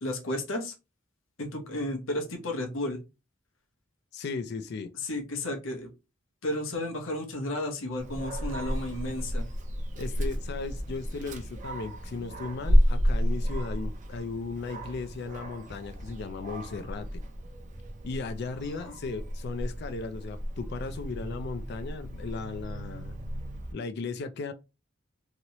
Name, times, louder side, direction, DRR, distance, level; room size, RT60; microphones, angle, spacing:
voice 1, 0.0-0.7 1.4-3.0 5.0-5.9 6.4-9.5 18.8-18.9, left 1 dB, 85° left, 0.8 m, -33 dB
voice 2, 4.1-4.9 10.0-17.2 18.0-23.2 23.7-24.5, left 4 dB, 55° left, 0.4 m, -36 dB
Dog, 8.0-23.7, equal, 40° right, 0.6 m, -31 dB
3.0 x 2.7 x 2.9 m
head